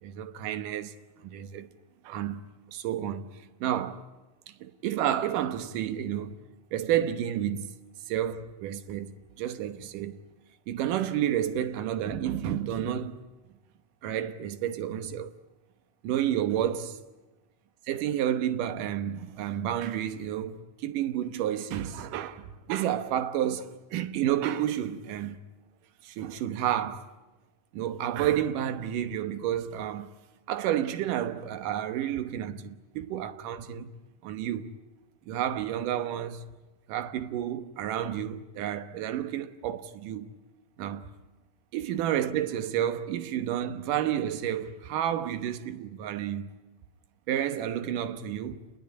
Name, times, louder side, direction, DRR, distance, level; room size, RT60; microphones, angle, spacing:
voice 1, 0.0-0.9 1.2-1.7 2.0-3.3 3.6-4.0 4.5-6.4 6.7-7.8 8.1-9.1 9.4-10.2 10.7-13.2 14.0-15.3 16.0-17.0 17.9-25.4 26.0-27.1 27.7-30.1 30.5-33.9 34.2-34.7 35.3-36.4 36.9-40.3 40.8-41.1 41.7-46.5 47.3-48.6, right 10 dB, 75° right, 2.7 m, -30 dB
28.0 x 21.0 x 9.7 m
omnidirectional pair, 3.8 m